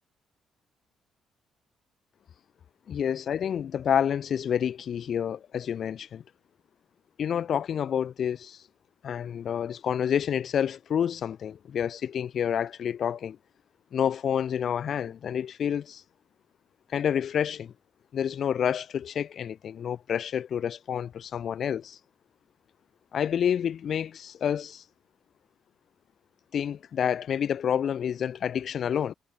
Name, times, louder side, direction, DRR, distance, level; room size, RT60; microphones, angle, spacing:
voice 1, 2.9-6.2 7.2-8.6 9.0-13.4 13.9-16.0 16.9-17.7 18.1-22.0 23.1-24.8 26.5-29.1, left 8 dB, 60° left, 5.3 m, -28 dB
cardioid pair, 90°, 0 cm